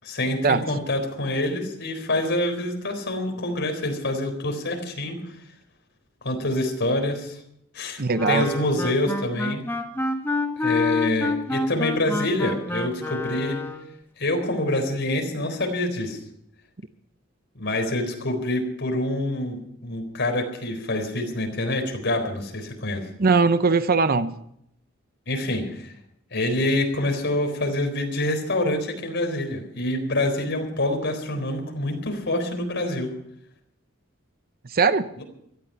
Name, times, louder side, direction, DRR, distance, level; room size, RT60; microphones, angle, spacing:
voice 1, 0.0-5.3 6.2-7.4 7.7-9.6 10.6-13.6 14.2-16.2 17.6-23.0 25.3-25.9 26.3-33.1, left 1 dB, 60° left, 4 dB, 4.1 m, -26 dB
voice 2, 8.0-8.5 23.2-24.4 34.7-35.1, right 4 dB, 45° right, 12 dB, 0.8 m, -20 dB
Wind instrument woodwind instrument, 8.1-13.9, left 3 dB, 10° left, 1.5 m, -27 dB
17.5 x 14.0 x 5.7 m, 0.73 s
head